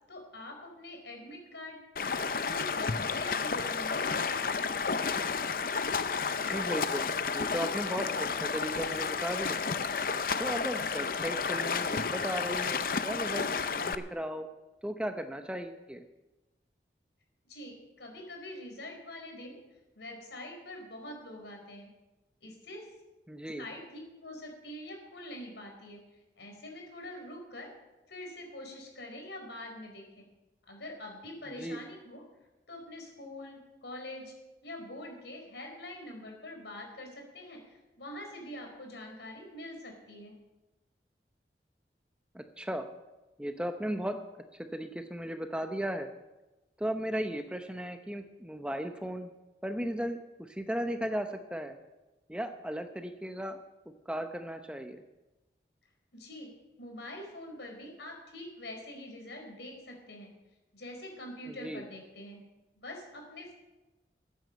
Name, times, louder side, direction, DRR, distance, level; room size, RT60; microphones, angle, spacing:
voice 1, 0.1-1.8 2.1-4.9 17.4-19.6 19.9-21.9 22.4-22.9 23.6-26.0 26.4-27.7 28.1-30.3 30.7-32.2 32.7-34.3 34.6-40.4 56.1-56.5 56.8-60.3 60.7-62.4 62.7-63.5, left 1 dB, 85° left, 2 dB, 4.6 m, -45 dB
Stream, 2.0-14.0, left 5 dB, 50° left, 0.6 m, -31 dB
voice 2, 6.3-9.6 10.4-13.5 13.7-14.5 14.8-16.0 23.3-23.6 31.5-31.8 42.3-42.9 43.4-44.2 44.6-46.1 46.8-49.3 49.6-51.8 52.3-53.6 54.1-55.0 61.5-61.8, equal, 5° right, 7 dB, 0.7 m, -36 dB
14.0 x 9.3 x 7.7 m, 1.1 s
head